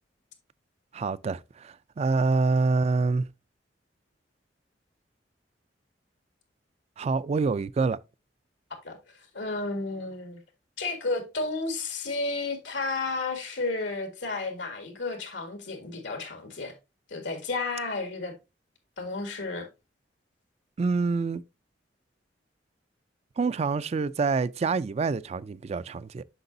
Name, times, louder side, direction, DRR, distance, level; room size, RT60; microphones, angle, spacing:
voice 1, 0.9-3.3 7.0-8.0 20.8-21.4 23.4-26.2, right 4 dB, 35° right, 0.3 m, -26 dB
voice 2, 8.8-10.4 10.8-16.7 17.1-18.3 19.0-19.7, left 3 dB, 90° left, 1.8 m, -32 dB
7.9 x 6.0 x 2.6 m
head